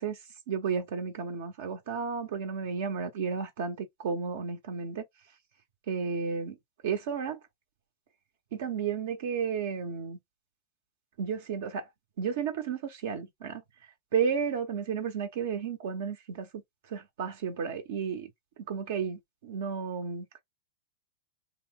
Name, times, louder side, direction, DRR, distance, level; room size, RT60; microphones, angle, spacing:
voice 1, 0.0-5.0 5.9-6.6 6.8-7.4 8.5-10.2 11.2-11.9 12.2-16.6 16.9-18.3 18.7-20.4, right 6 dB, 65° right, 0.6 m, -33 dB
2.9 x 2.0 x 3.4 m
hypercardioid pair, 105°, 0 cm